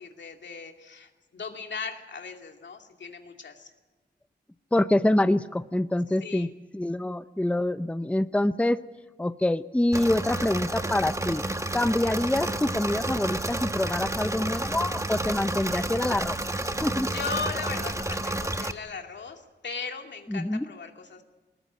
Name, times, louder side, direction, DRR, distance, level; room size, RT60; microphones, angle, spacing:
voice 1, 0.0-3.7 6.2-6.5 13.9-14.3 17.1-21.2, left 5 dB, 85° left, 3 dB, 2.5 m, -38 dB
voice 2, 4.7-6.5 6.7-8.8 9.2-11.5 11.7-16.4 16.8-17.1 20.3-20.7, left 1 dB, 5° left, 12 dB, 0.7 m, -26 dB
Engine / Mechanisms, 9.9-18.7, right 1 dB, 15° right, 1.2 m, -30 dB
20.5 x 19.0 x 8.7 m, 1.2 s
wide cardioid pair, 75°, 18 cm